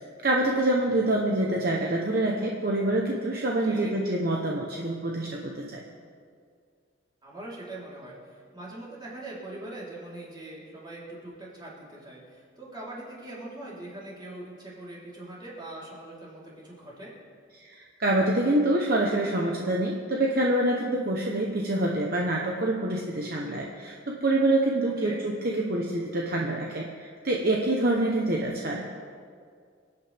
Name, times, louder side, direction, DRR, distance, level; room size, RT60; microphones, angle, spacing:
voice 1, 0.2-5.8 18.0-26.9 27.2-28.8, right 1 dB, 50° right, -1 dB, 1.0 m, -26 dB
voice 2, 3.6-4.0 7.2-17.1 24.8-25.2, right 1 dB, 25° right, -7 dB, 3.8 m, -42 dB
26.0 x 9.0 x 3.5 m, 2.1 s
head